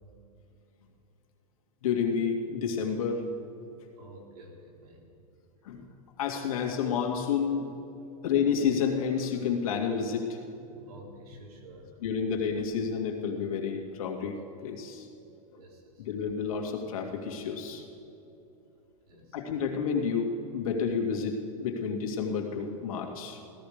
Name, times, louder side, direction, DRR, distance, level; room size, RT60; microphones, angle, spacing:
voice 1, 1.8-3.2 5.6-5.8 6.2-7.7 8.2-10.4 12.0-15.1 16.0-17.9 19.3-23.4, left 6 dB, 65° left, 2 dB, 2.4 m, -30 dB
voice 2, 4.0-5.0 8.2-8.3 10.6-12.1 15.5-16.1 19.0-19.4, right 1 dB, 75° right, 1 dB, 3.6 m, -51 dB
16.5 x 13.5 x 5.1 m, 2.9 s
supercardioid pair, 155°, 20 cm